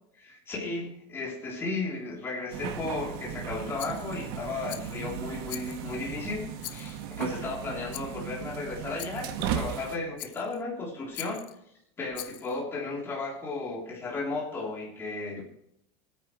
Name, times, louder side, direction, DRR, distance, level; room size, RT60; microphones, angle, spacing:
voice 1, 0.2-11.5 12.0-15.5, left 3 dB, 15° left, -4 dB, 3.4 m, -35 dB
sound 1, 2.5-10.0, right 8 dB, 60° right, 1.6 m, -36 dB
Rattle, 3.8-4.3 4.7-5.1 5.5-6.0 6.6-7.2 7.9-8.2 9.0-9.4 10.2-10.6 11.1-11.6 12.1-12.6, left 17 dB, 55° left, 0.6 m, -43 dB
22.5 x 9.4 x 3.2 m, 0.73 s
supercardioid pair, 165°, 14 cm